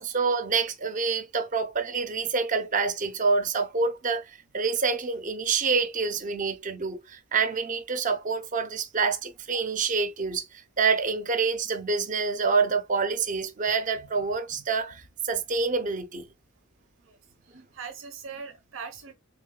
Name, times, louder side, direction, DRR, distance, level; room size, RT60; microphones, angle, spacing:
voice 1, 0.0-16.3, right 4 dB, 40° right, 0.6 m, -27 dB
voice 2, 17.0-19.1, right 5 dB, 90° right, 0.8 m, -41 dB
3.7 x 3.6 x 2.2 m
head